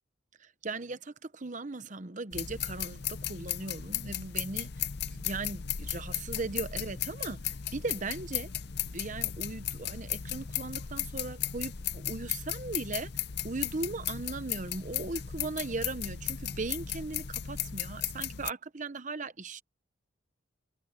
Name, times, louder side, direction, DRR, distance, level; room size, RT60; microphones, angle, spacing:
voice 1, 0.4-8.5 8.8-13.1 13.4-19.6, right 3 dB, 35° right, 0.9 m, -38 dB
sound 1, 2.3-18.5, left 10 dB, 55° left, 0.7 m, -36 dB
head